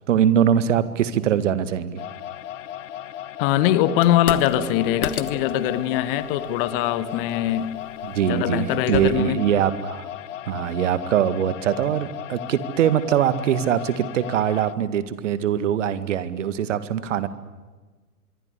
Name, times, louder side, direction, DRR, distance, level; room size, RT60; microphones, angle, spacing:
voice 1, 0.1-2.0 8.0-10.1 10.5-17.3, right 9 dB, 55° right, 14 dB, 2.0 m, -22 dB
sound 1, 2.0-14.7, left 11 dB, 55° left, 1.2 m, -36 dB
voice 2, 3.4-7.7 8.2-9.4, left 12 dB, 35° left, 15 dB, 1.7 m, -22 dB
sound 2, 4.0-9.2, left 7 dB, 70° left, 1.6 m, -35 dB
sound 3, 4.6-9.7, left 3 dB, 5° left, 1.5 m, -45 dB
25.0 x 23.5 x 8.4 m, 1.3 s
figure-of-eight pair, 110°, 45 cm